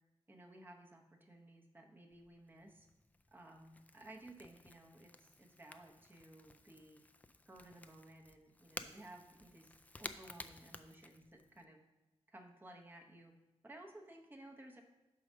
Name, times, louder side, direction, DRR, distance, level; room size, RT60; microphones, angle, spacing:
voice 1, 0.3-2.9 3.3-7.0 7.5-9.7 10.0-11.8 12.3-13.3 13.6-14.8, right 1 dB, 15° right, 1 dB, 0.9 m, -57 dB
Crackle / Crack, 2.1-11.6, left 2 dB, 15° left, 0.3 m, -54 dB
5.5 x 4.8 x 6.1 m, 1.0 s
wide cardioid pair, 140°, 12 cm